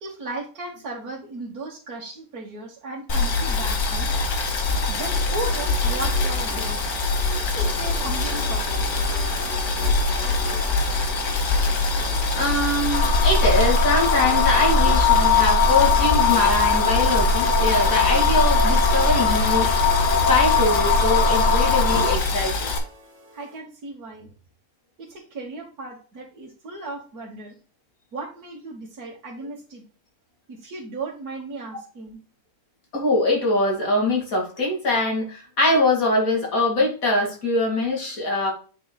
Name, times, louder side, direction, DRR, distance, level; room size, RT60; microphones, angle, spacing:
voice 1, 0.0-4.2 4.9-6.8 7.5-8.7 23.3-24.3 25.0-27.6 28.1-29.8 30.5-32.2, right 3 dB, 80° right, -4 dB, 1.9 m, -35 dB
Boiling, 3.1-22.8, left 3 dB, 85° left, 1.8 m, -24 dB
sound 1, 5.0-23.6, right 2 dB, 50° right, 2.6 m, -39 dB
voice 2, 12.3-19.7 20.3-22.7 32.9-38.5, left 2 dB, 65° left, 0 dB, 3.0 m, -23 dB
sound 2, 12.9-22.2, left 4 dB, 45° left, 0.6 m, -20 dB
8.1 x 6.2 x 2.3 m, 0.38 s
omnidirectional pair, 1.6 m